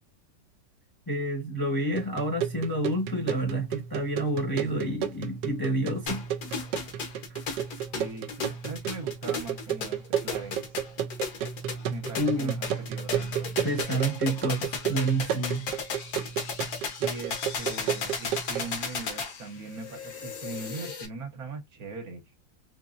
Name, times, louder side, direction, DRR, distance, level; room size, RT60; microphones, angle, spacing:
voice 1, 1.1-6.2 12.2-12.6 13.6-15.7, right 1 dB, 15° left, 0.8 m, -29 dB
sound 1, 2.0-18.7, right 9 dB, 75° right, 1.2 m, -33 dB
sound 2, 6.1-21.1, left 5 dB, 60° left, 1.3 m, -35 dB
voice 2, 7.9-10.6 11.9-13.5 17.0-22.2, right 3 dB, 60° right, 1.2 m, -40 dB
4.1 x 2.9 x 2.5 m
omnidirectional pair, 2.0 m